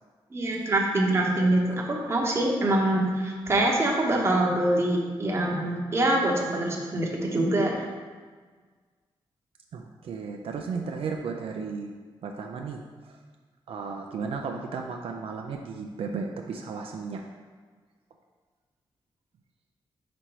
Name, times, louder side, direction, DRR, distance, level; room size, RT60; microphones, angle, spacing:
voice 1, 0.3-7.9, right 1 dB, 25° right, -1 dB, 0.9 m, -24 dB
voice 2, 9.7-11.9 12.2-13.2 13.7-17.2, right 5 dB, 75° right, 2 dB, 0.4 m, -34 dB
5.1 x 4.3 x 4.6 m, 1.5 s
wide cardioid pair, 165°, 10 cm